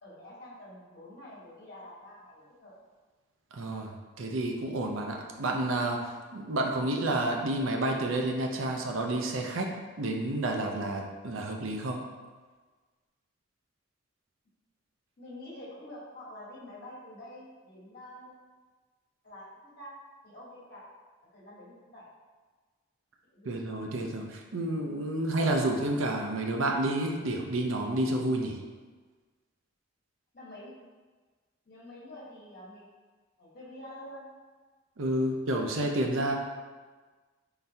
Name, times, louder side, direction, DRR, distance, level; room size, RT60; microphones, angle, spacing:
voice 1, 0.0-2.7 15.2-18.3 19.2-19.9 20.2-20.8 21.3-22.1 23.3-23.5 30.3-30.7 31.6-32.8 33.4-34.2 35.2-35.3, left 1 dB, 50° left, -6 dB, 1.2 m, -47 dB
voice 2, 3.5-3.9 4.2-12.0 23.5-28.6 35.0-36.4, right 1 dB, 75° right, 2 dB, 0.6 m, -30 dB
4.4 x 3.9 x 2.7 m, 1.4 s
head